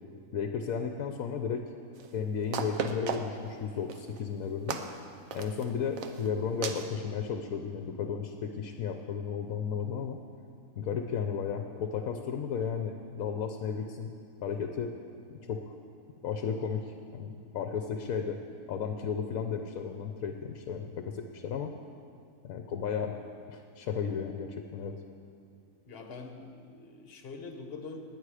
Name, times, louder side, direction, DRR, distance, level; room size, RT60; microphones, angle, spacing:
voice 1, 0.3-1.6 2.1-4.8 5.3-10.2 10.8-14.1 14.4-14.9 15.3-15.7 16.2-18.4 18.7-21.7 22.4-23.1 23.5-25.0, left 6 dB, 70° left, 5 dB, 1.1 m, -34 dB
sound 1, 2.0-2.1 2.5-3.5 3.9-4.2 4.7-5.0 5.3-5.6 6.0-6.3 6.6-6.9, right 6 dB, 65° right, 1.1 m, -35 dB
voice 2, 25.9-28.0, left 4 dB, 45° left, 5 dB, 1.3 m, -44 dB
19.5 x 9.0 x 4.9 m, 2.4 s
omnidirectional pair, 1.6 m